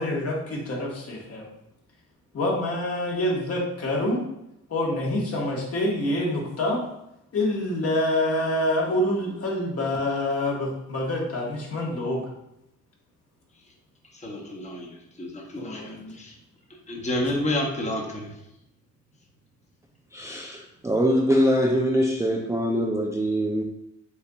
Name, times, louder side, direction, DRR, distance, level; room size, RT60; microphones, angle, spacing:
voice 1, 0.0-1.4 2.3-4.2 4.7-6.8 7.3-12.2 15.6-16.1, left 1 dB, 50° left, -3 dB, 1.5 m, -26 dB
voice 2, 14.1-16.4 16.9-18.3, left 1 dB, 25° left, -1 dB, 1.0 m, -30 dB
voice 3, 20.1-23.6, equal, 10° right, -1 dB, 0.4 m, -23 dB
7.1 x 2.7 x 2.4 m, 0.83 s
cardioid pair, 90°, 30 cm